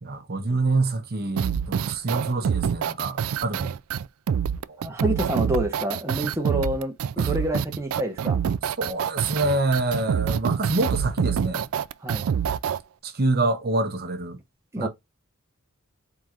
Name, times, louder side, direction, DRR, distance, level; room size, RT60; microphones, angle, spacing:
voice 1, 0.0-3.7 4.8-4.9 7.2-7.3 8.6-11.7 13.0-14.4 14.8-14.9, right 2 dB, 45° right, 0.9 m, -26 dB
sound 1, 1.4-12.8, right 7 dB, 70° right, 0.3 m, -26 dB
voice 2, 4.8-8.4 12.0-12.3 14.7-14.9, right 1 dB, 15° right, 0.8 m, -28 dB
4.4 x 3.7 x 2.4 m
head